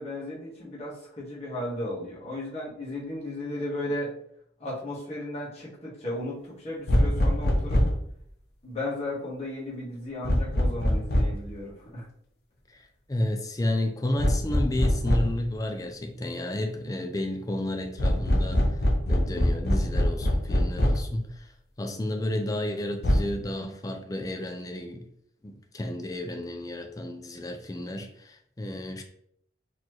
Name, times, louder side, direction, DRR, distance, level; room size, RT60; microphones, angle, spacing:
voice 1, 0.0-4.1 4.6-7.8 8.6-12.1, left 1 dB, 35° left, -6 dB, 1.4 m, -35 dB
sound 1, 6.9-8.1 10.2-11.5 14.2-15.4 18.0-21.1 23.0-23.2, equal, 55° left, 0.7 m, -24 dB
voice 2, 13.1-18.6 19.1-21.5 21.8-25.1 25.4-29.0, left 1 dB, 20° left, 4 dB, 0.4 m, -31 dB
4.1 x 2.9 x 3.1 m, 0.69 s
head